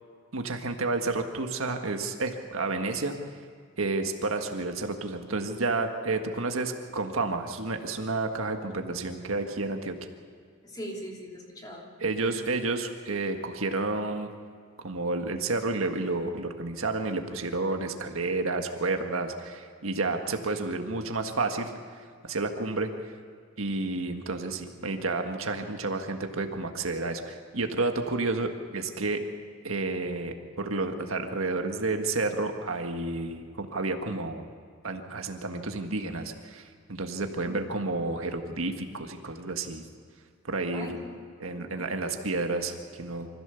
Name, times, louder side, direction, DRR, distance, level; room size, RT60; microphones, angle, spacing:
voice 1, 0.3-3.1 3.8-10.0 12.0-14.3 14.8-21.7 22.2-22.9 23.6-29.2 29.6-34.5 34.8-39.8 40.4-40.9 41.4-43.3, right 3 dB, 80° right, 5 dB, 1.6 m, -30 dB
voice 2, 10.6-11.9 40.7-41.9, equal, 20° left, -1 dB, 3.0 m, -41 dB
25.0 x 15.0 x 7.0 m, 2.1 s
head